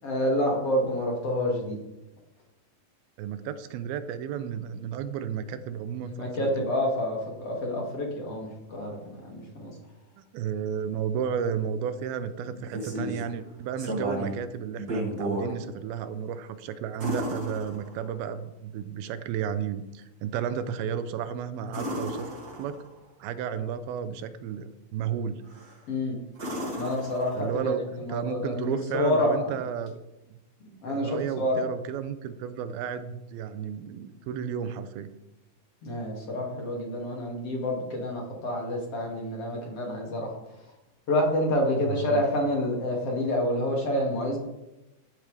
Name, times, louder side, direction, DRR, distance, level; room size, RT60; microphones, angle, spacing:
voice 1, 0.0-1.8 6.2-9.7 25.9-26.2 26.8-29.5 30.6-31.6 35.8-40.3 41.1-44.4, left 1 dB, 45° left, -1 dB, 3.1 m, -28 dB
voice 2, 3.2-6.5 10.2-22.3 22.6-22.8 23.2-25.4 27.3-30.0 30.9-35.1 41.8-42.2, right 8 dB, 85° right, 11 dB, 2.6 m, -33 dB
sound 1, 12.4-13.3 13.8-14.4 14.8-15.5 17.0-18.3 21.7-23.0 25.5-25.8 26.3-27.7 29.9-30.0, equal, 30° right, 2.3 m, -33 dB
13.5 x 11.0 x 3.4 m, 0.95 s
omnidirectional pair, 4.2 m